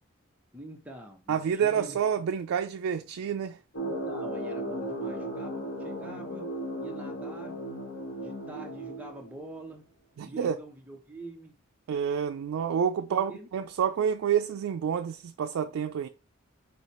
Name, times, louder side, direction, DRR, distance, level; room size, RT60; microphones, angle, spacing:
voice 1, 0.5-2.0 3.8-6.5 6.8-7.6 8.2-9.8 10.2-11.5 13.1-13.5, right 1 dB, 5° right, 0.8 m, -45 dB
voice 2, 1.3-3.6 10.2-10.6 11.9-16.1, right 7 dB, 80° right, 0.3 m, -28 dB
sound 1, 3.7-9.5, right 1 dB, 65° left, 0.9 m, -36 dB
4.8 x 2.3 x 4.2 m
head